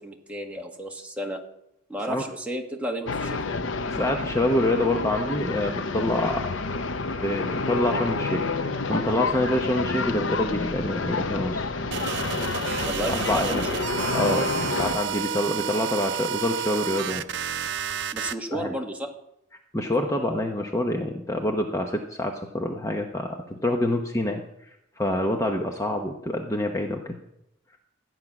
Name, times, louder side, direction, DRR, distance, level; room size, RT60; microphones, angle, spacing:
voice 1, 0.0-1.4 1.9-3.4 12.8-13.6 18.1-19.1, right 1 dB, 10° right, 0 dB, 1.7 m, -32 dB
sound 1, 3.1-15.0, left 3 dB, 70° left, 0.8 m, -29 dB
voice 2, 3.9-6.4 7.1-11.7 13.1-13.7 14.1-17.2 18.5-18.7 19.7-24.4 25.0-27.2, left 1 dB, 15° left, 3 dB, 0.9 m, -26 dB
sound 2, 11.9-18.3, right 8 dB, 65° right, 0.6 m, -30 dB
14.0 x 9.5 x 6.0 m, 0.82 s
head